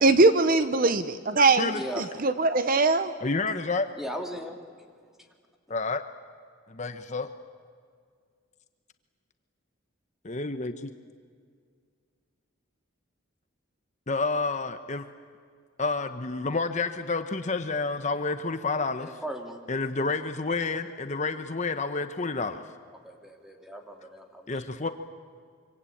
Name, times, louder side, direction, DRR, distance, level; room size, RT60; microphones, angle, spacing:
voice 1, 0.0-3.1, right 3 dB, 45° right, 11 dB, 0.8 m, -21 dB
voice 2, 3.2-3.9 5.7-6.0 6.7-7.3 10.2-10.9 14.1-15.0 15.8-19.2 19.7-22.6 24.5-24.9, left 3 dB, 35° left, 8 dB, 0.9 m, -29 dB
voice 3, 4.0-4.6 5.2-5.3 19.0-19.6 23.0-24.6, equal, ahead, 3 dB, 2.5 m, -37 dB
25.5 x 25.0 x 8.6 m, 2.1 s
head